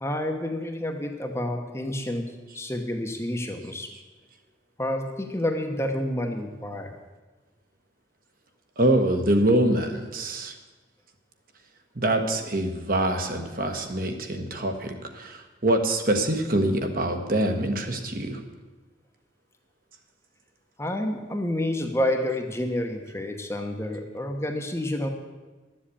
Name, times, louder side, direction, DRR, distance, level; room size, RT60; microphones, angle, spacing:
voice 1, 0.0-2.2 2.5-3.9 4.8-6.9 20.8-25.1, left 1 dB, 15° left, 3 dB, 1.0 m, -29 dB
voice 2, 8.8-10.5 11.9-18.4, right 1 dB, 45° right, 5 dB, 1.3 m, -25 dB
12.0 x 7.6 x 8.5 m, 1.2 s
head